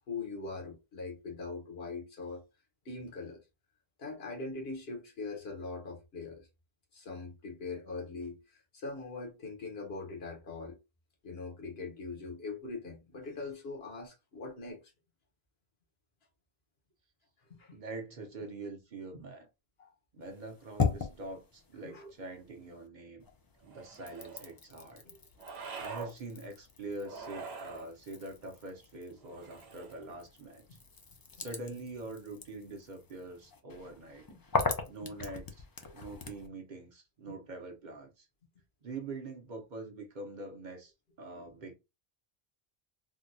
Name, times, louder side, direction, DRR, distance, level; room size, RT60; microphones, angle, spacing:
voice 1, 0.1-2.4 2.8-3.4 4.0-6.5 6.9-10.8 11.2-14.8 17.5-17.8 19.8-19.9 21.8-22.1 25.0-25.2 34.7-35.0 41.3-41.5, left 3 dB, 75° left, 1.3 m, -42 dB
voice 2, 17.7-19.5 20.1-23.3 23.6-25.0 25.8-30.8 31.4-34.3 34.9-35.6 35.9-38.3 38.8-40.9 41.2-41.8, right 2 dB, 50° right, 0.8 m, -44 dB
sound 1, 20.2-22.9 23.2-36.5, left 4 dB, 35° left, 0.3 m, -40 dB
sound 2, 23.7-24.5 25.4-26.1 27.0-27.9 29.2-30.1, right 5 dB, 90° right, 1.0 m, -44 dB
3.6 x 2.2 x 2.6 m
omnidirectional pair, 1.0 m